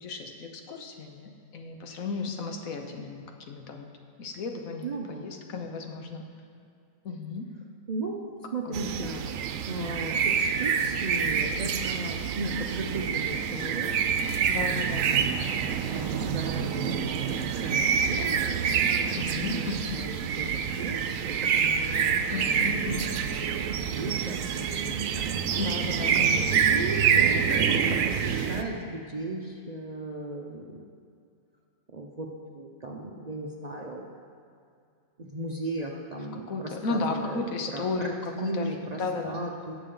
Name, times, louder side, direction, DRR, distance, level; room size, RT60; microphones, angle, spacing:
voice 1, 0.0-3.9 4.2-6.2 7.0-7.5 8.6-8.8 14.5-15.1 16.5-16.7 19.1-20.0 22.3-23.1 25.6-26.7 36.5-38.1 38.4-39.4, left 3 dB, 75° left, 4 dB, 1.4 m, -34 dB
voice 2, 4.8-5.4 7.9-9.2 9.7-14.0 15.1-15.3 15.9-22.6 22.9-23.0 23.4-25.4 26.1-30.8 31.9-34.1 35.2-37.4 37.7-39.7, right 2 dB, 40° right, 0 dB, 0.6 m, -36 dB
sound 1, 8.7-28.6, right 7 dB, 75° right, 1.0 m, -27 dB
18.0 x 7.0 x 3.8 m, 2.4 s
omnidirectional pair, 1.4 m